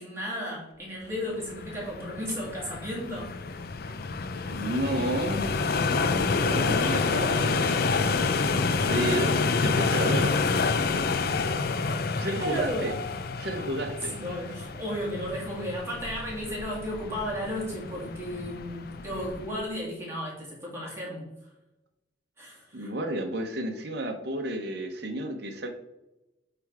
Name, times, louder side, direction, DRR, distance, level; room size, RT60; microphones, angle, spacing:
voice 1, 0.0-3.3 12.3-12.9 14.1-21.3 22.4-22.9, equal, 15° right, -5 dB, 2.6 m, -34 dB
sound 1, 1.3-19.6, left 4 dB, 50° left, 0.5 m, -28 dB
voice 2, 4.5-5.5 6.1-8.3 8.9-10.4 12.1-12.9 13.4-14.1 22.7-25.7, right 1 dB, 55° right, 4 dB, 0.9 m, -31 dB
8.4 x 3.4 x 4.7 m, 0.94 s
head